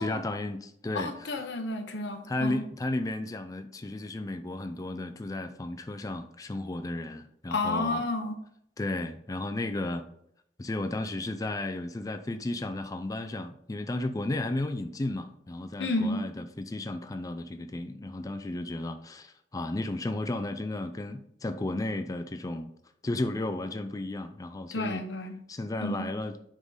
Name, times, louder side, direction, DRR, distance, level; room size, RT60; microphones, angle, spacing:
voice 1, 0.0-1.6 2.3-8.1 8.8-10.0 10.6-22.7 23.0-25.0 25.5-26.3, left 2 dB, 20° left, 0.4 m, -34 dB
voice 2, 0.9-2.6 7.5-8.4 15.8-16.2 24.7-25.4 25.8-26.1, left 2 dB, 85° left, 0.9 m, -31 dB
9.3 x 3.7 x 4.0 m
head